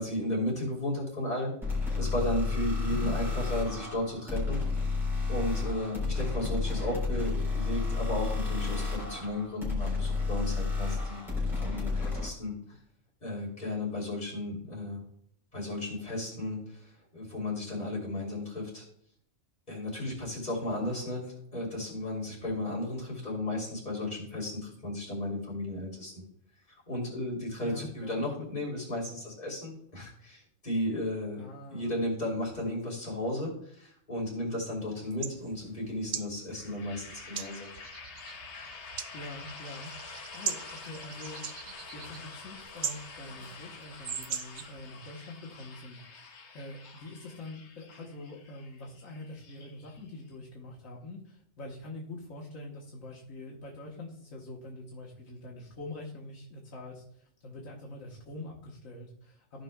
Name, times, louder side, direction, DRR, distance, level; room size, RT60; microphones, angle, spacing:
voice 1, 0.0-1.5 2.0-4.6 5.3-12.8 13.2-15.0 15.5-18.8 19.7-21.2 21.5-26.2 26.9-31.4 31.7-37.7, left 1 dB, 30° left, -4 dB, 3.3 m, -34 dB
sound 1, 1.6-12.3, left 4 dB, ahead, 3.4 m, -31 dB
voice 2, 20.7-21.2 27.6-28.2 31.4-32.0 39.1-39.9 40.3-41.4 41.9-46.2 46.5-59.6, left 2 dB, 75° left, -3 dB, 1.6 m, -44 dB
sound 2, 35.1-44.8, right 7 dB, 55° right, 0.6 m, -41 dB
sound 3, 36.5-50.3, left 4 dB, 60° left, 1.2 m, -48 dB
15.0 x 5.4 x 2.2 m, 0.65 s
omnidirectional pair, 1.4 m